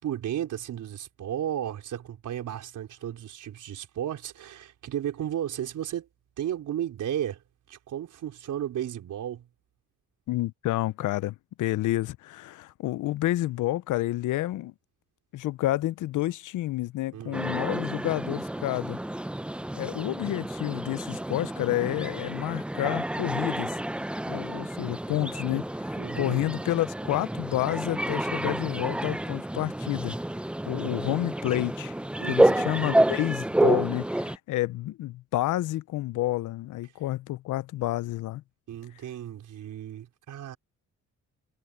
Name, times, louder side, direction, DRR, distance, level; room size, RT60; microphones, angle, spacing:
voice 1, 0.0-6.1 6.4-7.4 7.7-9.5 17.1-17.8 25.9-26.5 30.6-31.2 32.2-33.0 38.7-40.6, right 10 dB, 80° right, 4.8 m, -34 dB
voice 2, 10.3-14.7 15.3-19.0 19.7-23.8 24.3-30.1 30.7-32.0 32.3-38.4, left 16 dB, 80° left, 0.5 m, -29 dB
sound 1, 17.3-34.4, right 1 dB, 5° right, 0.5 m, -29 dB
cardioid pair, 105°, 30 cm